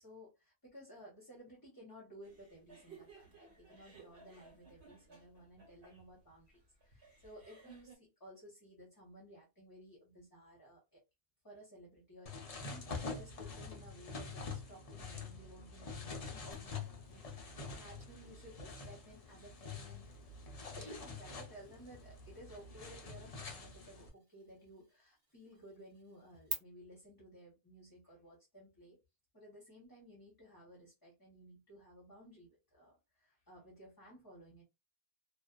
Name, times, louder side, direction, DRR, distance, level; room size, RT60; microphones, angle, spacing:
voice 1, 0.0-11.0 11.4-20.1 20.7-29.0 29.3-34.6, right 1 dB, 20° left, 0.8 m, -56 dB
sound 1, 2.2-8.0, right 4 dB, 50° right, 1.3 m, -59 dB
sound 2, 12.3-24.1, left 4 dB, 60° left, 0.3 m, -46 dB
sound 3, 16.5-26.5, right 2 dB, 30° right, 0.4 m, -54 dB
2.5 x 2.4 x 2.3 m
omnidirectional pair, 1.5 m